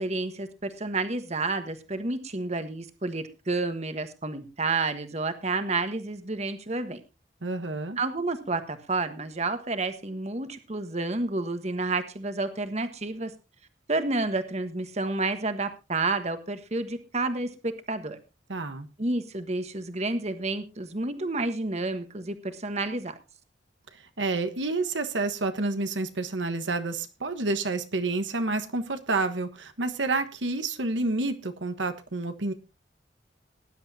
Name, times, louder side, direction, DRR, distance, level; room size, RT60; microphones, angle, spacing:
voice 1, 0.0-7.0 8.0-13.3 13.9-18.2 19.0-23.2, right 3 dB, 35° right, 9 dB, 1.3 m, -30 dB
voice 2, 7.4-8.0 18.5-18.9 23.9-32.5, right 3 dB, 80° right, 8 dB, 1.4 m, -29 dB
19.0 x 10.5 x 2.8 m, 0.29 s
head